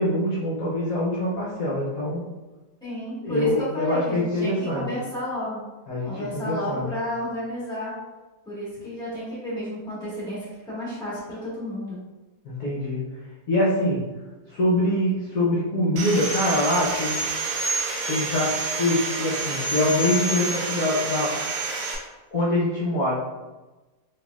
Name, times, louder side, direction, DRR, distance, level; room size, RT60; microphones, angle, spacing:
voice 1, 0.0-2.3 3.2-4.8 5.9-6.9 12.4-13.0 13.5-14.1 14.5-17.2 18.1-21.4 22.3-23.1, left 1 dB, 65° left, -6 dB, 1.1 m, -24 dB
voice 2, 2.8-5.6 6.0-7.9 8.4-12.0, left 1 dB, 5° left, -8 dB, 1.2 m, -31 dB
Sawing, 16.0-22.0, right 3 dB, 65° right, 1.0 m, -28 dB
4.4 x 2.8 x 2.3 m, 1.2 s
omnidirectional pair, 1.8 m